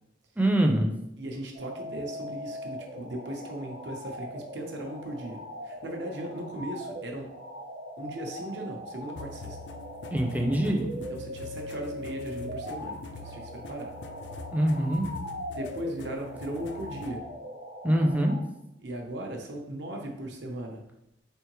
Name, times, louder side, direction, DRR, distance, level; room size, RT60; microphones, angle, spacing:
voice 1, 0.4-0.9 10.1-10.9 14.5-15.1 17.8-18.3, right 1 dB, 10° right, 2 dB, 0.4 m, -24 dB
voice 2, 1.2-5.4 5.6-7.3 8.0-9.6 11.1-13.9 15.5-17.2 18.8-20.8, right 1 dB, 75° right, 1 dB, 0.7 m, -37 dB
sound 1, 1.5-18.4, equal, 45° right, 0.7 m, -41 dB
sound 2, 9.2-17.2, left 3 dB, 70° left, 0.4 m, -44 dB
3.6 x 3.4 x 3.0 m, 0.84 s
head